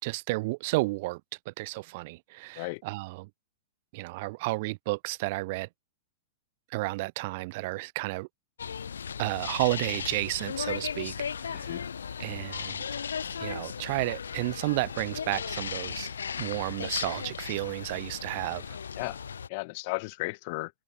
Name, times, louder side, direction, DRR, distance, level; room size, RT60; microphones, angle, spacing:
voice 1, 0.0-3.3 3.9-5.7 6.7-8.3 9.2-11.8 12.2-12.8 13.4-16.1 16.4-18.8, right 23 dB, 55° right, 3.2 m, -32 dB
sound 1, 8.6-19.5, left 7 dB, 85° left, 1.8 m, -36 dB
voice 2, 11.5-11.8 19.0-19.2 19.5-20.7, left 27 dB, 50° left, 4.7 m, -34 dB
hypercardioid pair, 115°, 0 cm